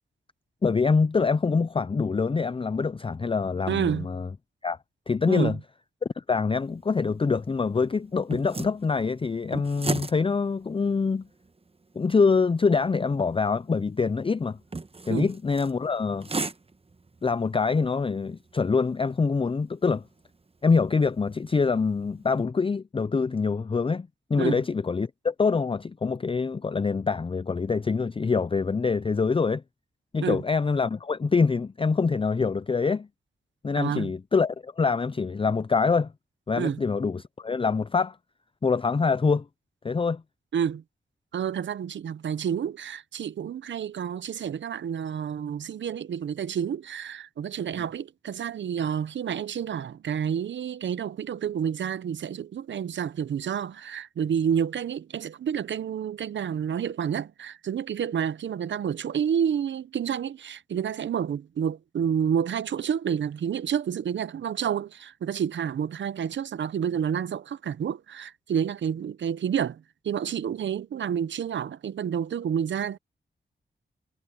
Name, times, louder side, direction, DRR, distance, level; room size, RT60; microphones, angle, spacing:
voice 1, 0.6-4.3 4.6-4.8 5.1-5.6 6.2-11.3 12.0-14.6 15.1-16.3 17.2-20.0 20.6-29.6 30.1-33.1 33.6-36.1 36.5-38.2 38.6-39.5 39.8-40.2, left 4 dB, 30° left, 0.5 m, -25 dB
voice 2, 3.7-4.1 5.3-5.6 15.1-15.3 24.4-24.6 30.2-30.4 33.8-34.1 36.5-36.8 40.5-40.8 41.3-73.0, right 8 dB, 80° right, 0.8 m, -29 dB
sound 1, 6.6-22.4, right 3 dB, 30° right, 1.2 m, -40 dB
cardioid pair, 45°, 19 cm